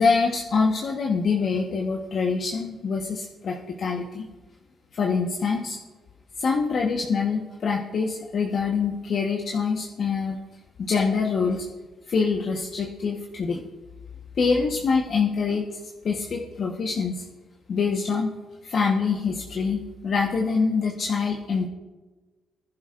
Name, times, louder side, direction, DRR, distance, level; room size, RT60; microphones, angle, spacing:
voice 1, 0.0-4.3 4.9-5.8 6.4-10.4 10.8-11.7 12.1-13.6 14.4-15.8 16.0-17.2 17.7-18.3 18.6-21.7, left 5 dB, 55° left, 0 dB, 1.1 m, -25 dB
20.0 x 11.0 x 2.5 m, 1.2 s
cardioid pair, 90°, 0 cm